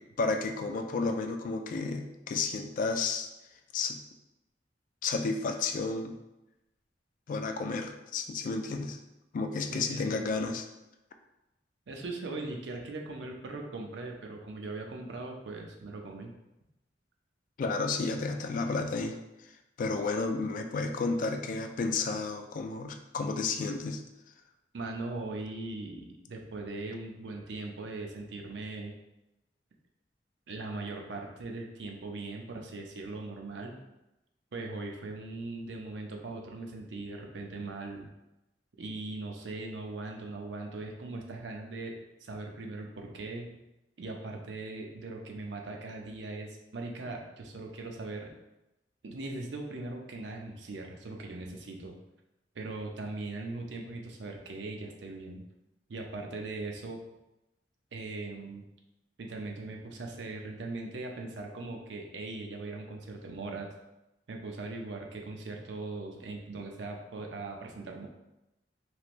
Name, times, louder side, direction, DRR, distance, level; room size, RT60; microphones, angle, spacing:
voice 1, 0.2-3.3 3.7-4.0 5.0-6.2 7.3-9.0 9.3-10.7 17.6-19.2 19.8-24.0, left 4 dB, 50° left, 5 dB, 0.3 m, -32 dB
voice 2, 9.7-10.3 11.9-16.3 24.7-28.9 30.5-33.8 34.5-38.1 38.8-41.9 42.2-43.5 44.0-48.3 49.0-52.0 52.5-55.4 55.9-57.0 57.9-58.6 59.2-63.7 64.3-68.1, right 2 dB, 90° right, 1 dB, 0.5 m, -40 dB
3.2 x 3.0 x 2.5 m, 0.95 s
head